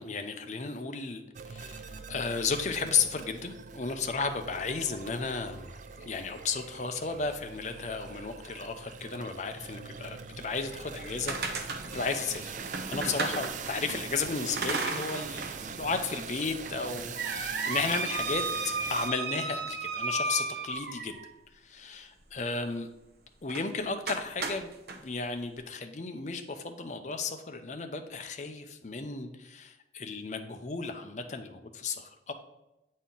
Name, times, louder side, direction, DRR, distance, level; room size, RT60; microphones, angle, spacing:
voice 1, 0.0-12.5 12.9-21.2 21.5-22.9 23.4-24.7 25.0-32.3, left 4 dB, 40° left, 7 dB, 0.6 m, -34 dB
sound 1, 1.3-19.1, right 6 dB, 45° right, 0.4 m, -42 dB
sound 2, 10.9-14.0 14.6-15.6 15.9-16.0 16.7-21.3 23.5-23.7 24.1-25.0, right 3 dB, 65° right, 0.7 m, -34 dB
8.2 x 4.2 x 3.8 m, 0.95 s
head